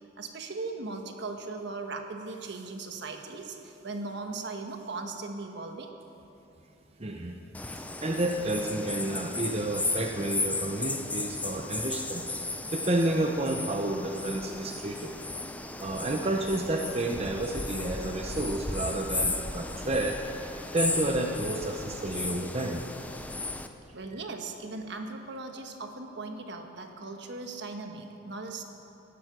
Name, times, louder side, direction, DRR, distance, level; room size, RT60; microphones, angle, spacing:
voice 1, 0.2-5.9 23.9-28.6, right 3 dB, 60° right, 5 dB, 1.3 m, -38 dB
voice 2, 7.0-7.4 7.7-12.2 12.7-15.1 15.8-20.2 20.7-22.8, right 1 dB, 30° right, 2 dB, 0.7 m, -30 dB
sound 1, 7.5-23.7, left 2 dB, 10° left, 0.6 m, -35 dB
17.0 x 12.0 x 6.1 m, 3.0 s
head